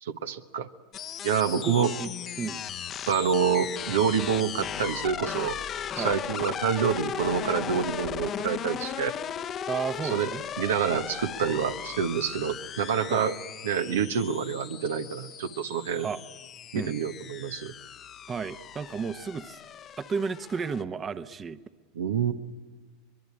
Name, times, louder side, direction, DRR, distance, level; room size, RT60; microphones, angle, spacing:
voice 1, 0.0-0.7 1.2-1.9 3.1-5.6 6.0-9.1 10.0-10.3 10.6-13.4 13.6-16.1 16.7-17.7 21.9-22.3, right 7 dB, 85° right, 8 dB, 1.2 m, -27 dB
sound 1, 0.9-20.8, left 9 dB, 35° left, 0.9 m, -37 dB
voice 2, 1.6-2.1 2.4-2.6 6.0-6.2 9.7-10.4 13.1-13.3 13.9-14.0 16.0-16.2 16.7-16.9 18.3-19.6 20.0-21.6, right 5 dB, 25° right, 12 dB, 0.9 m, -32 dB
23.5 x 22.0 x 8.6 m, 1.4 s
hypercardioid pair, 105°, 0 cm